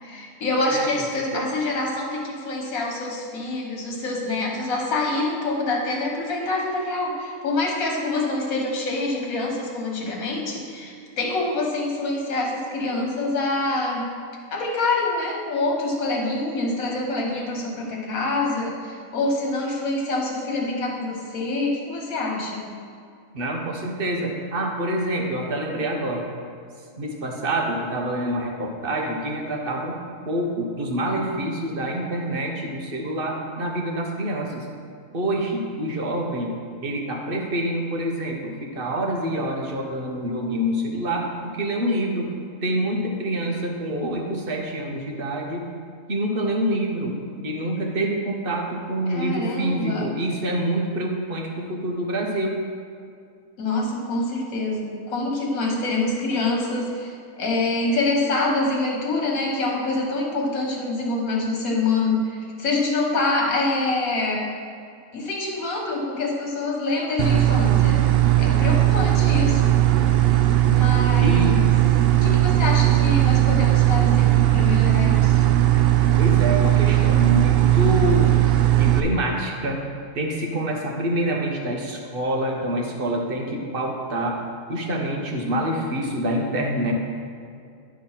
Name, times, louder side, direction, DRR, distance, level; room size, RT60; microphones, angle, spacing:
voice 1, 0.0-14.1 14.5-22.6 49.1-50.1 53.6-64.4 65.1-68.0 68.4-69.8 70.6-71.7 72.1-75.4, left 2 dB, 75° left, 0 dB, 1.8 m, -26 dB
voice 2, 23.3-26.3 27.0-30.0 30.2-34.7 35.1-36.5 36.8-42.3 42.6-45.6 46.1-47.2 47.4-52.6 71.2-71.6 76.2-78.4 78.8-79.8 80.1-84.4 84.7-86.9, right 1 dB, 45° right, 0 dB, 1.1 m, -26 dB
sound 1, 67.2-79.0, right 13 dB, 65° right, 0.6 m, -18 dB
11.0 x 3.7 x 5.7 m, 2.3 s
omnidirectional pair, 1.5 m